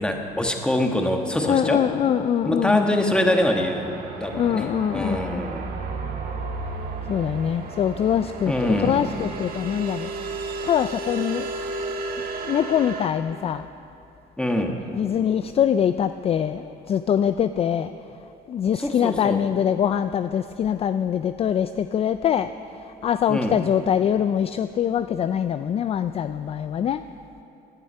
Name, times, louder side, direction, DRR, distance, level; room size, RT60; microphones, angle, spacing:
voice 1, 0.0-1.8 2.4-4.7 4.9-5.7 8.5-9.0 14.4-14.7 18.8-19.4 23.3-23.6, left 1 dB, 5° left, 2 dB, 1.5 m, -24 dB
voice 2, 1.4-2.9 4.3-5.4 7.1-10.1 10.6-11.5 12.4-13.7 14.9-17.9 18.5-22.5 22.8-27.0, left 9 dB, 35° left, 11 dB, 0.3 m, -23 dB
sound 1, 2.7-13.1, right 3 dB, 60° right, 1.7 m, -33 dB
17.0 x 10.5 x 5.5 m, 2.9 s
cardioid pair, 110°, 17 cm